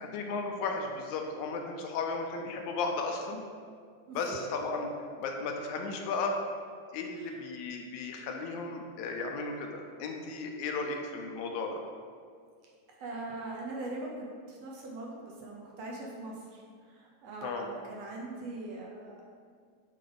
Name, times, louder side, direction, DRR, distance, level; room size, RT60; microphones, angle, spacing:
voice 1, 0.0-3.4 4.2-4.9 5.2-6.4 6.9-11.8 17.4-17.7, left 4 dB, 80° left, 2 dB, 1.9 m, -35 dB
voice 2, 4.1-4.4 7.1-7.3 12.9-19.2, right 2 dB, 70° right, -2 dB, 1.7 m, -41 dB
8.5 x 3.7 x 3.9 m, 2.1 s
omnidirectional pair, 3.4 m